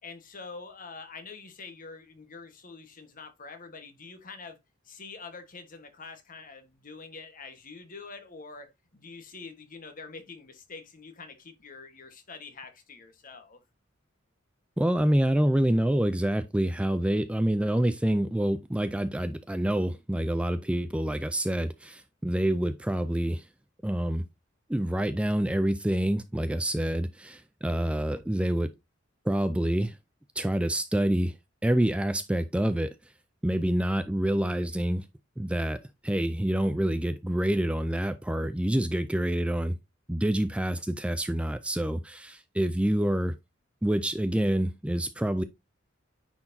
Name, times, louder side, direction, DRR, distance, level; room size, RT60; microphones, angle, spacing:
voice 1, 0.0-4.6 4.8-13.6, left 4 dB, 45° left, 1.3 m, -45 dB
voice 2, 14.8-23.4 23.8-24.2 24.7-28.7 29.3-30.0 30.4-31.4 31.6-32.9 33.4-35.0 35.4-35.8 36.0-39.7 40.1-43.4 43.8-45.4, right 1 dB, 5° right, 0.4 m, -27 dB
9.6 x 4.4 x 2.7 m
head